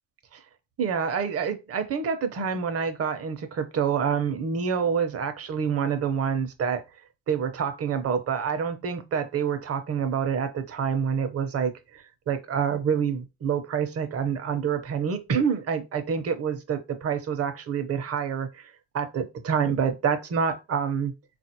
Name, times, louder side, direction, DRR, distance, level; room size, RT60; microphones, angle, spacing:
voice 1, 0.8-6.8 7.3-21.1, right 7 dB, 40° right, 0.8 m, -27 dB
3.9 x 2.5 x 2.8 m
hypercardioid pair, 70°, 36 cm